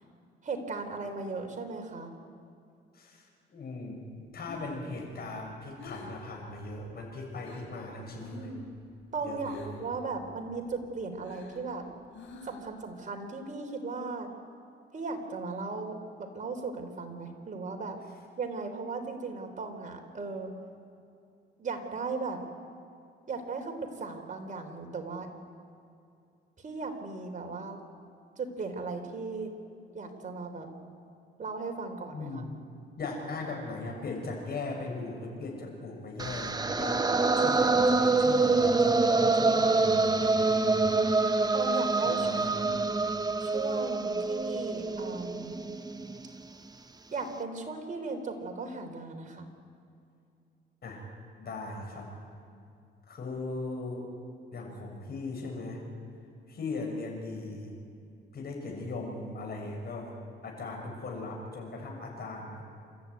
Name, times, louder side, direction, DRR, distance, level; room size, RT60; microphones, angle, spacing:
voice 1, 0.4-2.1 8.0-8.6 9.1-11.9 12.4-14.3 14.9-18.0 18.4-20.5 21.6-22.4 23.3-25.3 26.6-27.8 28.4-29.5 29.9-30.7 31.4-32.4 41.5-42.3 42.6-42.9 43.4-45.6 47.1-49.5, right 4 dB, 40° right, 4 dB, 3.8 m, -37 dB
voice 2, 2.9-4.1 4.3-8.5 9.2-9.9 32.1-32.5 33.0-41.0 42.0-42.6 50.8-52.1 53.1-54.1 54.5-55.8 56.5-57.8 58.3-60.1 60.4-62.6, left 3 dB, 50° left, 1 dB, 7.0 m, -39 dB
Breathing, 4.2-7.8 8.1-8.6 8.9-9.9 10.2-12.8, left 3 dB, 75° left, 4.9 m, -49 dB
sound 1, 36.2-46.3, right 3 dB, 20° right, 1.0 m, -26 dB
28.5 x 13.5 x 9.5 m, 2.5 s
cardioid pair, 90°, 20 cm